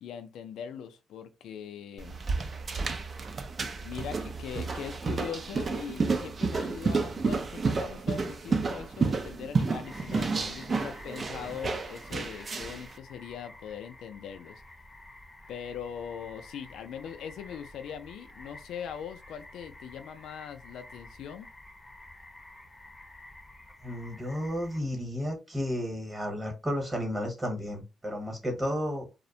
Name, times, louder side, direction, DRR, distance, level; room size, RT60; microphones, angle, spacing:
voice 1, 0.0-2.2 3.8-14.6 15.5-21.5, left 8 dB, 80° left, 0.3 m, -41 dB
sound 1, 2.0-12.9, right 4 dB, 40° right, 0.4 m, -31 dB
sound 2, 9.8-24.8, left 1 dB, 15° left, 0.6 m, -50 dB
voice 2, 23.8-29.1, equal, 15° right, 1.0 m, -32 dB
2.4 x 2.1 x 2.7 m
cardioid pair, 90°, 0 cm